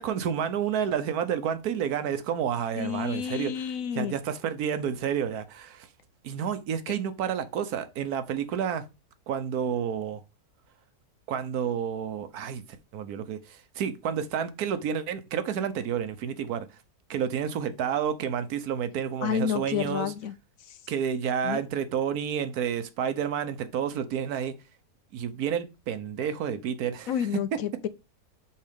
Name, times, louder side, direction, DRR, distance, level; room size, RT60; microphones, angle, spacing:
voice 1, 0.0-5.9 6.2-8.9 9.3-10.2 11.3-12.6 12.9-16.7 17.1-20.1 20.9-24.5 25.1-27.4, right 8 dB, 75° right, 1.2 m, -30 dB
voice 2, 2.8-4.2 19.2-20.3 20.7-20.8 21.4-21.6 27.1-27.9, left 8 dB, 65° left, 0.9 m, -30 dB
5.5 x 4.5 x 5.1 m
omnidirectional pair, 1.7 m